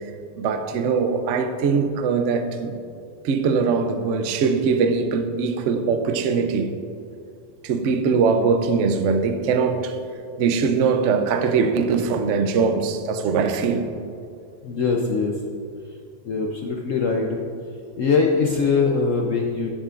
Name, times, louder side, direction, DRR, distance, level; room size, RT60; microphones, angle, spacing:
voice 1, 0.4-2.7 3.2-6.7 7.6-10.0 10.4-13.9, right 5 dB, 70° right, 0.7 m, -21 dB
voice 2, 14.6-15.4 16.2-17.4 18.0-19.7, left 4 dB, 65° left, 0.8 m, -22 dB
11.5 x 10.0 x 2.5 m
omnidirectional pair, 2.1 m